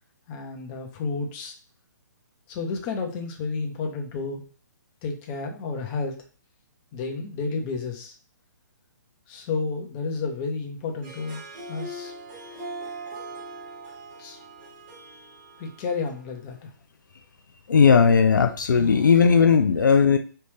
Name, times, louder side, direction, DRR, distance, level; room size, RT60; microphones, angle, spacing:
voice 1, 0.3-1.5 2.5-4.4 5.0-6.2 6.9-8.1 9.3-11.4 11.7-12.1 14.2-14.4 15.6-16.7, left 4 dB, 30° left, 3 dB, 0.7 m, -31 dB
Harp, 10.9-16.3, right 2 dB, 30° right, 1.1 m, -40 dB
voice 2, 17.7-20.2, left 6 dB, 75° left, 7 dB, 0.4 m, -17 dB
3.2 x 2.6 x 3.3 m, 0.38 s
hypercardioid pair, 135°, 10 cm